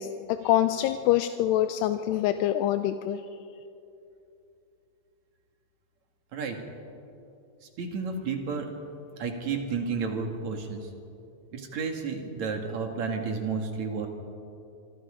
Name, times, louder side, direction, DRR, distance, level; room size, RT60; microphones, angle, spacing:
voice 1, 0.0-3.2, left 12 dB, 85° left, 9 dB, 2.7 m, -25 dB
voice 2, 7.8-8.7 9.2-10.9 11.5-14.1, right 5 dB, 50° right, 4 dB, 2.8 m, -31 dB
26.0 x 24.5 x 5.0 m, 2.7 s
omnidirectional pair, 4.7 m